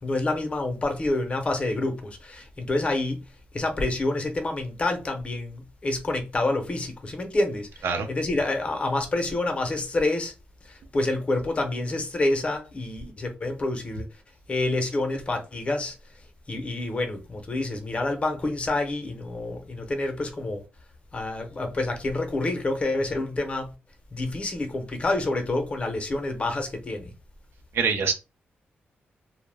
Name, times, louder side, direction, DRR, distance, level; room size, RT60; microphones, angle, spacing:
voice 1, 0.0-3.2 3.5-10.3 10.6-14.1 14.5-16.0 16.5-20.6 21.1-23.7 24.1-27.1, left 2 dB, 30° left, 0.6 m, -28 dB
voice 2, 27.7-28.1, right 5 dB, 85° right, 0.5 m, -24 dB
2.1 x 2.0 x 3.2 m
cardioid pair, 115°, 4 cm